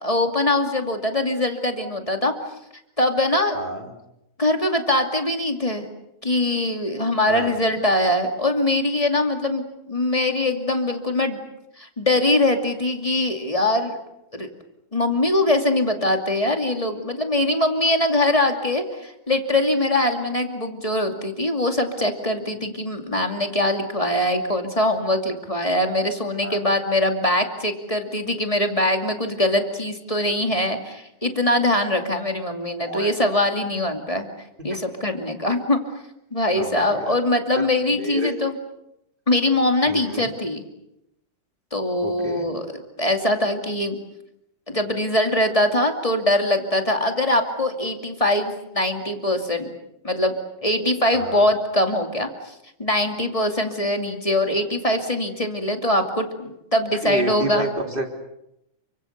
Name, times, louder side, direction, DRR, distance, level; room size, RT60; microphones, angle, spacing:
voice 1, 0.0-2.3 3.0-3.6 4.4-5.9 6.2-11.4 11.8-14.0 14.3-14.5 14.9-34.3 34.6-35.8 36.3-38.6 39.3-40.6 41.7-42.7 43.0-44.0 44.7-49.7 50.0-50.3 50.6-52.5 52.8-57.7, left 1 dB, 10° left, 4 dB, 1.7 m, -22 dB
voice 2, 3.5-3.9 7.3-7.6 26.4-26.6 32.8-33.1 34.7-34.8 36.6-37.2 37.6-38.3 39.9-40.3 42.0-42.5 51.1-51.5 57.0-58.1, right 1 dB, 15° right, 3 dB, 3.4 m, -30 dB
30.0 x 25.0 x 6.8 m, 0.82 s
omnidirectional pair, 4.2 m